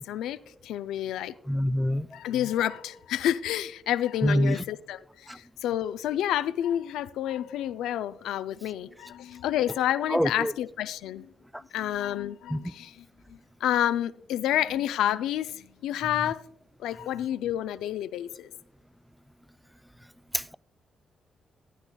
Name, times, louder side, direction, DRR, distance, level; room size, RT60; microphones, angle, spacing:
voice 1, 0.0-1.3 2.1-11.3 11.7-16.4 16.8-18.5, left 11 dB, 80° left, 0.3 m, -29 dB
voice 2, 1.5-2.1 4.2-4.6 5.3-5.4 10.1-10.5 12.5-12.6 20.3-20.5, equal, 5° right, 0.4 m, -25 dB
17.0 x 10.0 x 2.3 m
hypercardioid pair, 45°, 0 cm